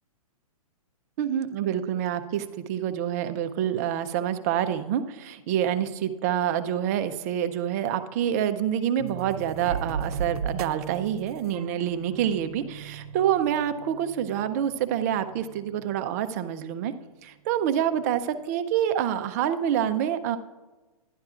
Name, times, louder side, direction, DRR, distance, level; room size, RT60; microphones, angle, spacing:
voice 1, 1.2-16.9 17.2-20.4, right 10 dB, 25° right, 9 dB, 0.4 m, -27 dB
sound 1, 9.0-15.8, right 6 dB, 80° right, 0.5 m, -37 dB
12.0 x 10.5 x 2.4 m, 1.2 s
hypercardioid pair, 155°, 19 cm